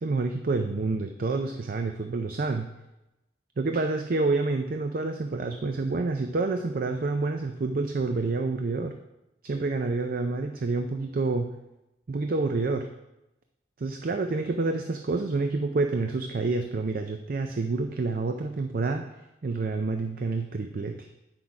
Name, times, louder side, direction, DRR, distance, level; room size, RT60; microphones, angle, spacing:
voice 1, 0.0-2.7 3.6-8.9 9.4-11.5 12.1-12.9 13.8-19.0 19.4-21.1, right 3 dB, 50° right, 6 dB, 0.5 m, -28 dB
8.7 x 6.1 x 4.7 m, 0.94 s
head